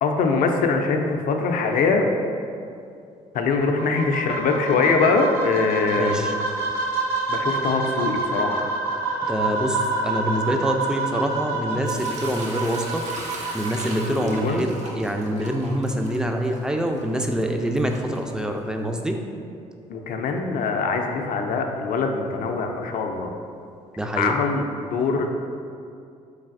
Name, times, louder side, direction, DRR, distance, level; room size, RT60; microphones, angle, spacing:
voice 1, 0.0-2.0 3.3-6.2 7.3-8.7 14.2-14.6 19.9-23.3 24.2-25.3, left 4 dB, 60° left, 3 dB, 0.4 m, -23 dB
sound 1, 3.6-14.6, right 3 dB, 70° right, 0.8 m, -28 dB
voice 2, 6.0-6.3 9.3-13.0 13.5-19.2 24.0-24.4, equal, 5° right, 3 dB, 0.3 m, -25 dB
Sink (filling or washing) / Liquid, 11.9-18.8, right 2 dB, 45° right, 0.9 m, -40 dB
3.9 x 3.2 x 2.5 m, 2.5 s
hypercardioid pair, 60°, 16 cm